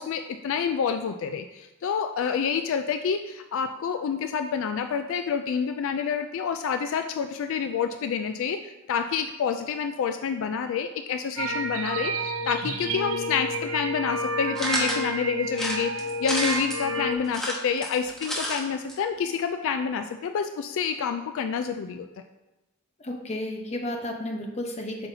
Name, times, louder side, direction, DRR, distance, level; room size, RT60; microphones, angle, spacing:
voice 1, 0.0-22.1, left 6 dB, 65° left, 7 dB, 0.3 m, -28 dB
sound 1, 11.4-17.2, right 1 dB, 70° right, 0.7 m, -30 dB
sound 2, 14.6-15.0 15.5-16.8 17.3-18.6 18.9-19.0 19.2-19.3, equal, ahead, 1.0 m, -30 dB
voice 2, 23.0-25.1, left 1 dB, 30° left, 2 dB, 0.8 m, -32 dB
7.8 x 5.6 x 2.7 m, 1.0 s
head